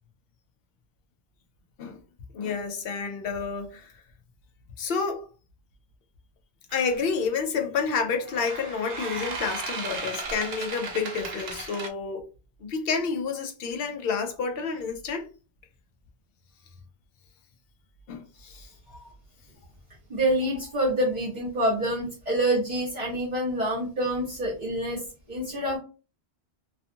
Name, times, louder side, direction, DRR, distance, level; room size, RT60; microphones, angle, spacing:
voice 1, 2.3-3.9 4.8-5.2 6.7-12.3 12.6-15.3 18.1-18.7, left 5 dB, 65° left, 0.7 m, -29 dB
sound 1, 6.7-7.0 8.2-11.9, right 3 dB, 70° right, 0.8 m, -35 dB
voice 2, 20.1-25.8, right 1 dB, 45° right, 0.9 m, -27 dB
2.5 x 2.3 x 2.6 m
omnidirectional pair, 1.1 m